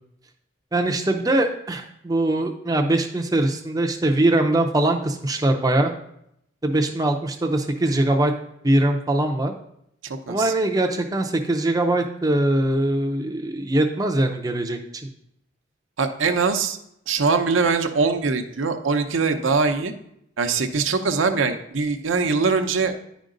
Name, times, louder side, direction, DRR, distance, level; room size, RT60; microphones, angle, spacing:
voice 1, 0.7-5.9 6.6-8.3 8.6-9.5 10.3-15.1, right 1 dB, 20° right, 4 dB, 0.5 m, -22 dB
voice 2, 10.0-10.5 16.0-16.8 17.1-19.9 20.4-22.9, right 4 dB, 80° right, 6 dB, 0.7 m, -22 dB
10.0 x 5.1 x 3.8 m, 0.75 s
head